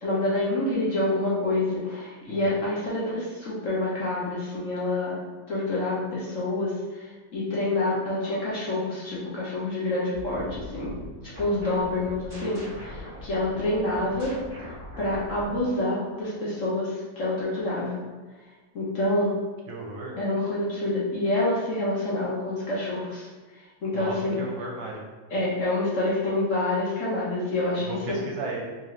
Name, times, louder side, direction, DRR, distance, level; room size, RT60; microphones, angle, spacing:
voice 1, 0.0-5.2 5.5-10.9 11.4-14.3 15.0-18.0 18.7-19.3 20.2-23.3 23.8-24.4 25.3-28.2, left 2 dB, 50° left, -7 dB, 1.1 m, -27 dB
sound 1, 10.1-16.3, left 1 dB, 25° right, 1.0 m, -41 dB
voice 2, 19.7-20.1 23.9-25.0 27.8-28.6, right 3 dB, 75° right, -2 dB, 1.3 m, -35 dB
3.7 x 2.6 x 3.1 m, 1.3 s
omnidirectional pair, 2.0 m